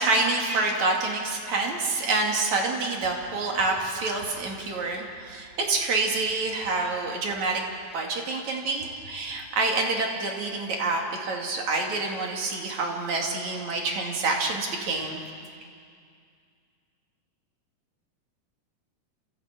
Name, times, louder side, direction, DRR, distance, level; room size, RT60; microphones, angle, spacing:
voice 1, 0.0-7.6 7.9-15.2, right 3 dB, 60° right, 0 dB, 3.7 m, -27 dB
29.0 x 16.0 x 8.2 m, 2.2 s
omnidirectional pair, 3.7 m